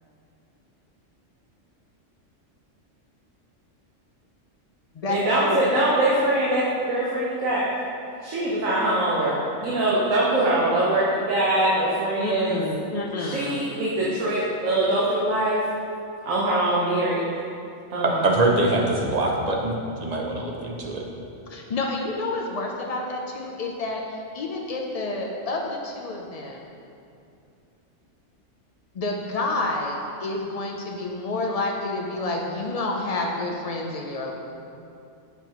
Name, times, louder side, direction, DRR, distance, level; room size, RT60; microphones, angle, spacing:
voice 1, 5.1-7.6 8.2-9.3 9.6-12.6 13.3-15.6 16.2-17.2 17.9-18.2, right 1 dB, 90° right, -6 dB, 1.3 m, -23 dB
voice 2, 12.2-13.6 21.5-26.7 28.9-34.3, left 2 dB, 80° left, 0 dB, 0.3 m, -29 dB
voice 3, 18.0-21.1, right 2 dB, 55° right, -1 dB, 0.4 m, -23 dB
7.0 x 5.8 x 3.0 m, 2.6 s
omnidirectional pair, 1.3 m